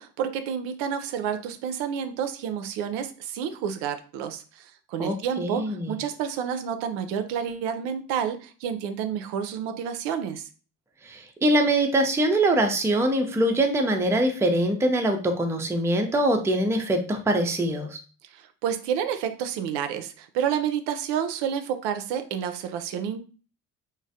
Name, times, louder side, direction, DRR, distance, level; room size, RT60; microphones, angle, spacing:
voice 1, 0.0-10.5 18.3-23.2, right 8 dB, 65° right, 8 dB, 0.5 m, -29 dB
voice 2, 5.0-6.0 11.1-18.0, right 1 dB, 5° right, 3 dB, 0.5 m, -23 dB
3.1 x 2.1 x 2.6 m, 0.38 s
hypercardioid pair, 45°, 46 cm